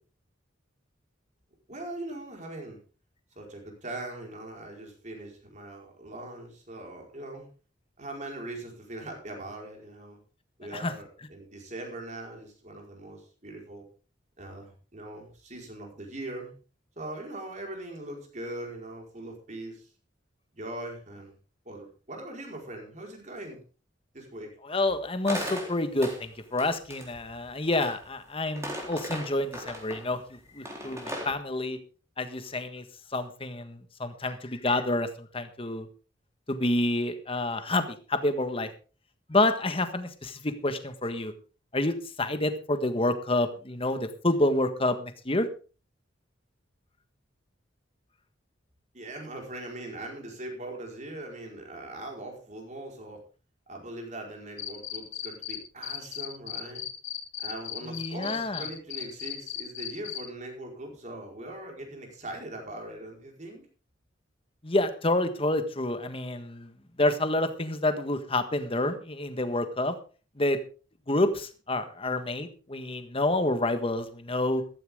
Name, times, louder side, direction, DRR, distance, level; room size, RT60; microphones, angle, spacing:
voice 1, 1.7-2.8 3.3-7.5 8.0-10.2 10.6-13.8 14.4-16.5 17.0-19.9 20.5-21.3 21.6-23.6 24.1-24.5 48.9-53.2 53.7-56.8 57.4-63.6, right 1 dB, 40° right, 1 dB, 4.9 m, -41 dB
voice 2, 24.6-30.2 30.5-31.8 32.2-32.8 33.1-35.9 36.5-38.7 39.3-41.3 41.7-45.5 57.8-58.6 64.6-66.7 67.0-69.9 70.4-70.6 71.1-74.6, left 2 dB, 30° left, 9 dB, 1.5 m, -28 dB
sound 1, 25.3-26.2 26.6-28.0 28.4-30.1 30.7-31.3, equal, 15° right, 3.9 m, -37 dB
Cricket, 54.6-55.6 55.8-60.2, left 11 dB, 85° left, 3.7 m, -35 dB
14.5 x 13.5 x 3.7 m, 0.36 s
head